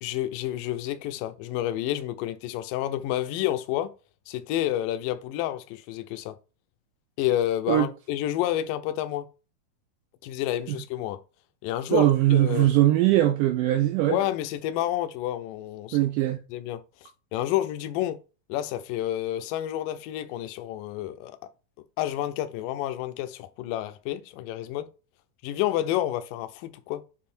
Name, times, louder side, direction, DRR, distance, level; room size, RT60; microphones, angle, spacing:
voice 1, 0.0-3.9 4.3-6.4 7.2-9.3 10.2-11.2 11.6-12.8 14.1-16.0 16.5-18.2 18.5-21.4 22.0-24.9 25.4-27.0, left 13 dB, 75° left, 2.2 m, -29 dB
voice 2, 11.9-14.2 15.9-16.4, right 14 dB, 80° right, 1.9 m, -21 dB
7.6 x 3.6 x 4.3 m
omnidirectional pair, 4.2 m